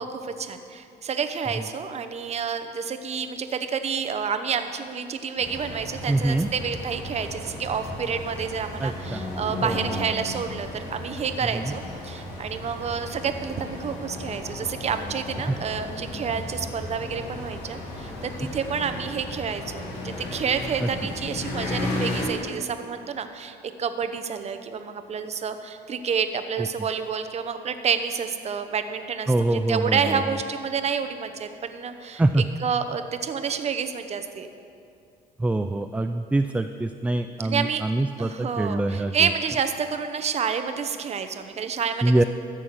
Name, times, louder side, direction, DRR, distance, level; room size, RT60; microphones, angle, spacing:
voice 1, 0.0-32.2 32.6-34.5 37.4-37.8 38.2-42.2, right 6 dB, 40° right, 9 dB, 0.9 m, -29 dB
sound 1, 5.4-22.3, left 1 dB, 80° left, 2.5 m, -34 dB
voice 2, 6.1-6.5 8.8-9.2 9.6-10.0 11.5-11.7 15.5-15.6 20.8-20.9 26.6-26.7 29.3-30.4 32.2-32.5 35.4-39.3 42.0-42.2, right 2 dB, 10° right, 8 dB, 0.3 m, -24 dB
13.5 x 6.3 x 7.6 m, 2.4 s
cardioid pair, 110°, 17 cm